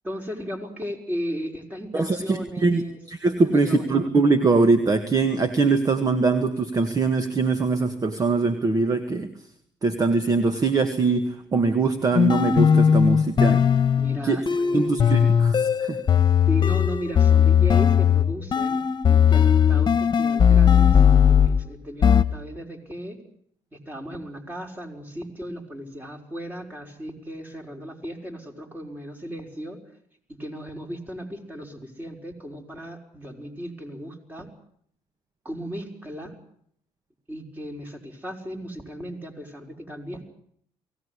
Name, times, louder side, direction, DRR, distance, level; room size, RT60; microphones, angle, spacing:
voice 1, 0.0-3.0 3.4-3.8 14.0-15.1 16.5-23.2 23.7-29.8 30.3-34.5 35.4-36.3 37.3-40.3, equal, 15° right, 3 dB, 5.6 m, -36 dB
voice 2, 1.9-9.3 9.8-13.6 14.2-14.4 14.7-16.0, right 3 dB, 35° right, 9 dB, 1.9 m, -22 dB
sound 1, 12.1-21.6 22.0-22.2, left 8 dB, 40° left, 1.5 m, -18 dB
23.5 x 18.0 x 9.9 m, 0.67 s
cardioid pair, 90°, 11 cm